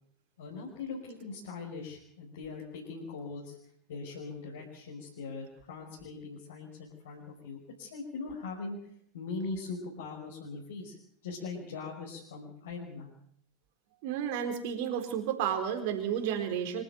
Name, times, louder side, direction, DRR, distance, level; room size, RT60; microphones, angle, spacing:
voice 1, 0.4-3.6 3.9-8.8 9.1-11.0 11.2-13.1, left 4 dB, 60° left, -4 dB, 5.8 m, -41 dB
voice 2, 14.0-16.8, right 8 dB, 50° right, 5 dB, 4.1 m, -32 dB
25.5 x 12.5 x 9.4 m, 0.69 s
figure-of-eight pair, 90°, 0 cm